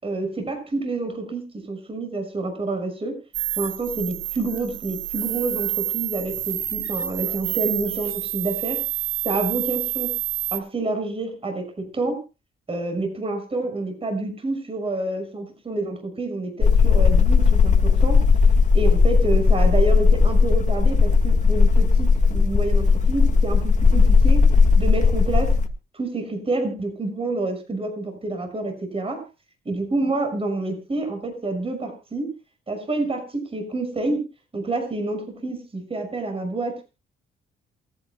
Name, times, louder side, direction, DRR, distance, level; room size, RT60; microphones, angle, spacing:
voice 1, 0.0-3.1 3.6-8.8 9.2-10.1 10.5-12.2 12.7-18.2 18.7-24.4 24.8-25.5 25.9-29.2 29.6-32.3 32.7-34.2 34.5-36.8, right 2 dB, 30° right, 5 dB, 6.3 m, -28 dB
sound 1, 3.3-10.6, right 13 dB, 85° right, 1.4 m, -28 dB
sound 2, 16.6-25.7, left 5 dB, 40° left, 1.9 m, -17 dB
27.5 x 10.0 x 2.3 m, 0.30 s
cardioid pair, 90°, 20 cm